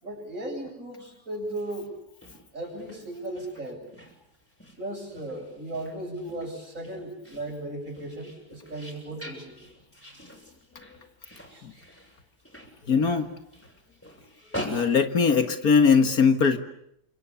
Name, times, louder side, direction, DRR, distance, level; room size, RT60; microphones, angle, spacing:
voice 1, 0.0-1.9 2.5-3.8 4.8-9.6 11.5-11.7, right 1 dB, 55° right, 2 dB, 8.4 m, -36 dB
sound 1, 1.5-15.9, equal, 10° left, 7.2 m, -44 dB
voice 2, 12.9-13.3 14.6-16.6, left 5 dB, 65° left, 7 dB, 2.2 m, -20 dB
29.5 x 26.0 x 7.0 m, 0.74 s
omnidirectional pair, 1.7 m